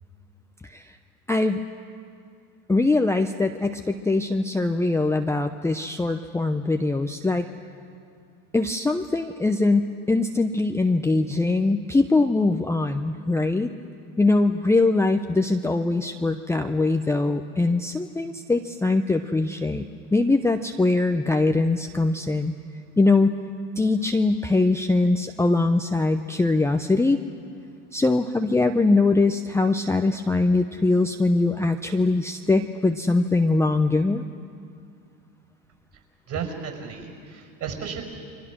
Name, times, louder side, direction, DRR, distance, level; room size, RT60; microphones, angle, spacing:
voice 1, 1.3-1.6 2.7-7.5 8.5-13.7 14.2-22.5 23.0-23.4 23.8-27.2 27.9-34.3, left 2 dB, 5° left, 5 dB, 0.7 m, -22 dB
voice 2, 36.3-38.0, right 7 dB, 45° right, 4 dB, 5.5 m, -33 dB
29.5 x 23.0 x 6.2 m, 2.3 s
hypercardioid pair, 95°, 45 cm